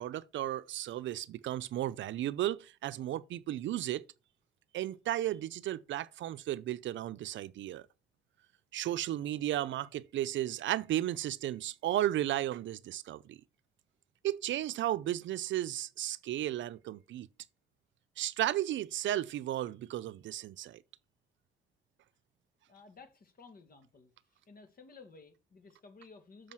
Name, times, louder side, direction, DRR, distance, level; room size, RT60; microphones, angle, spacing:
voice 1, 0.0-4.0 4.7-7.8 8.7-13.4 14.2-17.3 18.2-20.8, right 13 dB, 70° right, 0.6 m, -34 dB
voice 2, 22.7-24.1 24.5-26.5, left 4 dB, 45° left, 2.0 m, -55 dB
7.4 x 5.0 x 6.1 m
cardioid pair, 90°, 20 cm